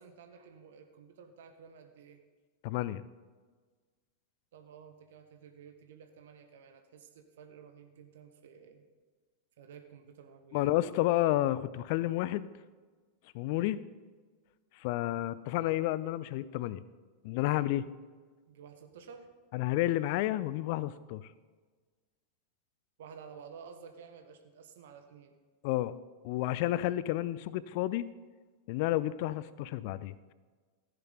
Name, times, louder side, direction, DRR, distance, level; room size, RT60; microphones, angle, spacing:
voice 1, 0.0-2.2 4.5-8.8 9.6-10.7 13.5-13.7 18.5-19.3 23.0-25.4, right 6 dB, 60° right, 7 dB, 1.3 m, -52 dB
voice 2, 2.6-3.0 10.5-12.5 13.3-13.8 14.8-16.8 17.2-17.9 19.5-21.3 25.6-26.0 26.2-28.1 28.7-30.3, left 15 dB, 45° left, 17 dB, 0.5 m, -31 dB
15.0 x 10.5 x 3.9 m, 1.4 s
figure-of-eight pair, 90°, 0 cm